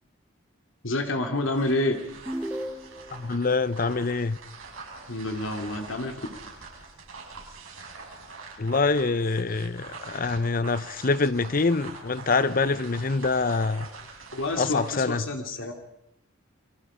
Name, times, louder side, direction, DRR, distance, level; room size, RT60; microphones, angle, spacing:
voice 1, 0.8-2.0 5.1-6.3 14.3-15.7, left 2 dB, 75° left, 2.8 m, -28 dB
sound 1, 1.3-15.0, right 4 dB, 90° right, 6.4 m, -44 dB
sound 2, 2.3-3.3, equal, 5° right, 1.1 m, -34 dB
voice 2, 3.1-4.4 8.6-13.9 14.6-15.2, left 3 dB, 45° left, 0.7 m, -25 dB
29.0 x 22.5 x 5.1 m
head